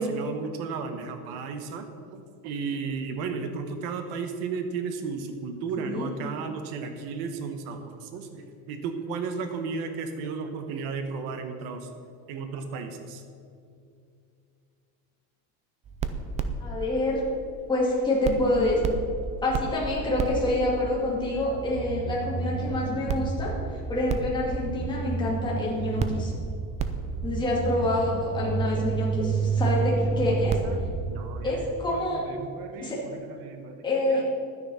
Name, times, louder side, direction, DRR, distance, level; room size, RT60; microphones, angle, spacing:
voice 1, 0.0-1.8 2.1-11.9 12.3-13.2 30.0-34.2, right 5 dB, 65° right, 6 dB, 1.2 m, -34 dB
voice 2, 5.8-6.1 16.6-17.2 17.7-18.8 19.4-23.5 23.9-26.3 27.2-30.6 31.4-32.2 32.8-33.0 33.8-34.3, left 1 dB, 10° left, -5 dB, 2.4 m, -27 dB
sound 1, 15.9-17.9 18.2-31.7, right 4 dB, 20° right, 0.3 m, -30 dB
12.0 x 9.7 x 5.6 m, 2.4 s
cardioid pair, 180°, 38 cm